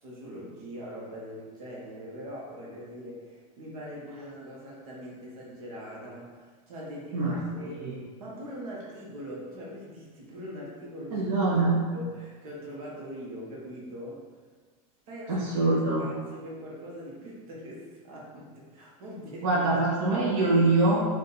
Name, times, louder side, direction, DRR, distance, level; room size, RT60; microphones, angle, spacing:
voice 1, 0.0-7.9 8.2-11.5 11.9-14.3 15.1-19.6 20.0-20.2, equal, 85° right, -4 dB, 1.4 m, -42 dB
voice 2, 11.1-11.8 15.3-16.0 19.4-21.0, right 2 dB, 65° right, -6 dB, 1.3 m, -24 dB
5.0 x 2.6 x 4.1 m, 1.5 s
supercardioid pair, 125°, 18 cm